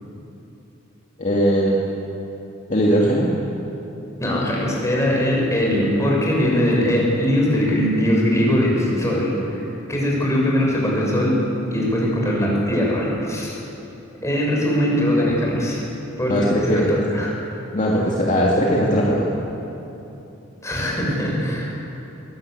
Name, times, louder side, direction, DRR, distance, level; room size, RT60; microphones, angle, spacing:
voice 1, 1.2-1.8 2.7-3.3 16.3-16.9 17.7-19.2, equal, 40° left, -4 dB, 2.4 m, -19 dB
voice 2, 4.2-13.5 14.2-15.8 16.2-16.8 17.1-17.3 20.6-21.7, equal, 15° left, -3 dB, 6.5 m, -21 dB
22.0 x 19.0 x 8.5 m, 3.0 s
head